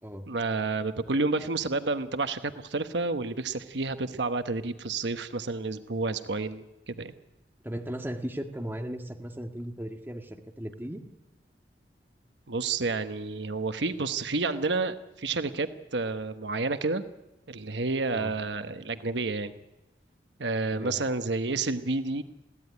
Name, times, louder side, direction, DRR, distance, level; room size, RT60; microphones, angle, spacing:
voice 1, 0.3-7.1 12.5-17.0 17.5-19.5 20.4-22.2, right 3 dB, 75° right, 10 dB, 1.1 m, -30 dB
voice 2, 7.6-11.0 18.1-18.3 20.7-21.0, equal, 10° right, 4 dB, 1.7 m, -36 dB
21.0 x 16.0 x 9.8 m, 1.0 s
head